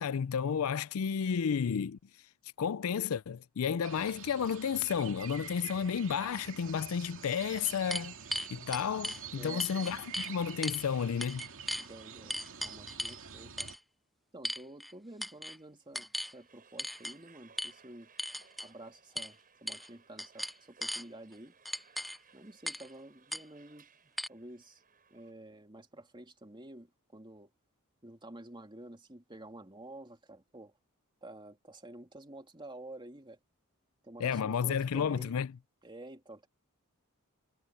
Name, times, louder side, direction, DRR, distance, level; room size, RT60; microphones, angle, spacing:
voice 1, 0.0-2.0 2.6-8.1 8.5-11.5 34.2-35.5, left 7 dB, 70° left, 0.4 m, -32 dB
sound 1, 3.8-13.8, right 7 dB, 65° right, 2.5 m, -47 dB
sound 2, 6.7-6.8 7.3-9.2 9.6-10.3 10.6-10.8 11.2-11.9 12.3-13.2 13.6-13.8 14.4-14.9 15.2-15.6 15.9-16.3 16.8-17.1 17.6-17.7 18.2-18.7 19.2-19.3 19.7-19.9 20.2-21.0 21.7-22.2 22.7-22.9 23.3-23.4 24.2-24.3, equal, ahead, 0.3 m, -37 dB
voice 2, 9.3-9.7 11.8-13.7 14.3-18.1 18.6-21.6 22.3-24.8 25.1-27.5 28.0-30.7 31.2-33.4 34.0-35.4 35.8-36.5, right 1 dB, 20° right, 2.8 m, -50 dB
sound 3, 15.8-25.3, right 6 dB, 40° right, 7.2 m, -63 dB
head